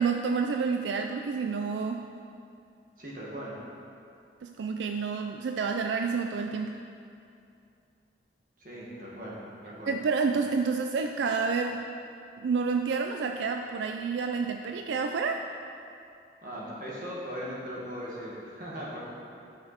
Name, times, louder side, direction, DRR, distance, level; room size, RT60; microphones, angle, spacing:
voice 1, 0.0-2.1 4.4-6.8 9.9-11.9 12.4-15.4, right 5 dB, 85° right, 4 dB, 0.4 m, -29 dB
voice 2, 3.0-3.5 8.6-9.9 16.4-19.0, equal, 50° right, -6 dB, 2.0 m, -39 dB
11.5 x 6.0 x 4.3 m, 2.6 s
head